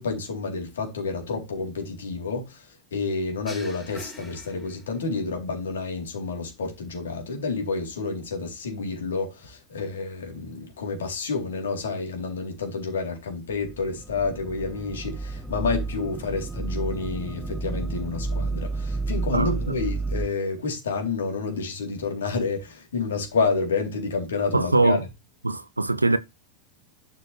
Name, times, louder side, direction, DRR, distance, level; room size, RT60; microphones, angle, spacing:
voice 1, 0.0-2.6 2.9-25.0, left 4 dB, 65° left, 3.7 m, -29 dB
sound 1, 3.5-5.2, left 1 dB, 10° left, 4.0 m, -44 dB
sound 2, 13.5-20.3, right 3 dB, 10° right, 0.8 m, -31 dB
voice 2, 19.3-19.8 24.5-25.0 25.4-26.2, right 2 dB, 80° right, 0.8 m, -22 dB
11.5 x 6.4 x 3.4 m
figure-of-eight pair, 90°, 0 cm